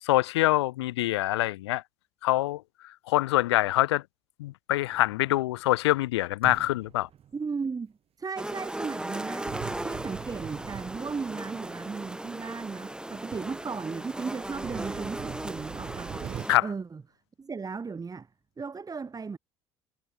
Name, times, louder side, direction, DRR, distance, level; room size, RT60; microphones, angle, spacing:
voice 1, 0.1-1.8 2.2-2.6 3.1-4.0 4.4-7.1 16.5-16.6, left 17 dB, 70° left, 0.5 m, -25 dB
Banging-Slamming Metal Cupboard, 4.9-5.6 6.4-7.7 9.5-11.6 12.4-12.5 13.0-13.1 13.3-13.6 14.4-16.5, right 9 dB, 40° right, 7.1 m, -42 dB
voice 2, 7.3-7.9 8.2-9.5 9.8-16.2 16.6-17.0 17.4-18.3 18.6-19.4, right 5 dB, 25° right, 6.2 m, -36 dB
sound 1, 8.4-16.6, right 1 dB, 5° right, 1.9 m, -37 dB
figure-of-eight pair, 60°, 15 cm